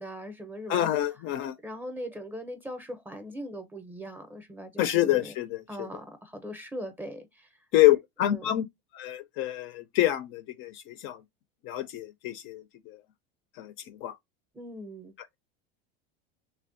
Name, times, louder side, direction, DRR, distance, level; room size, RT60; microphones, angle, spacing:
voice 1, 0.0-0.8 1.6-5.3 5.7-7.5 8.2-8.6 14.5-15.1, equal, 5° right, 0.5 m, -40 dB
voice 2, 0.7-1.5 4.8-5.9 7.7-8.6 8.9-11.2 11.6-13.0 13.6-14.1, left 14 dB, 45° left, 0.4 m, -27 dB
3.3 x 2.2 x 2.5 m
supercardioid pair, 120°, 29 cm